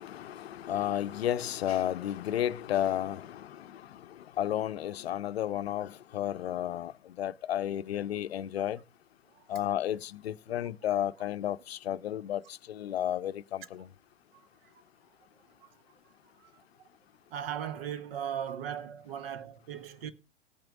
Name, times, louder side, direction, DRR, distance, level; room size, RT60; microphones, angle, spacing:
voice 1, 0.0-8.8 9.5-13.9, left 11 dB, 75° left, 0.6 m, -32 dB
voice 2, 17.3-20.1, right 9 dB, 65° right, 1.2 m, -37 dB
18.0 x 8.9 x 2.4 m
figure-of-eight pair, 95°, 32 cm